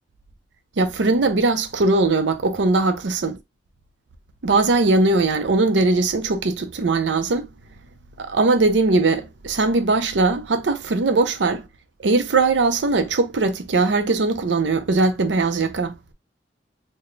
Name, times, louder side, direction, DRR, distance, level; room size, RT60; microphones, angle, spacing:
voice 1, 0.8-3.4 4.4-7.5 8.2-11.7 12.0-16.0, right 3 dB, 70° right, 0.6 m, -20 dB
3.9 x 2.2 x 3.2 m
head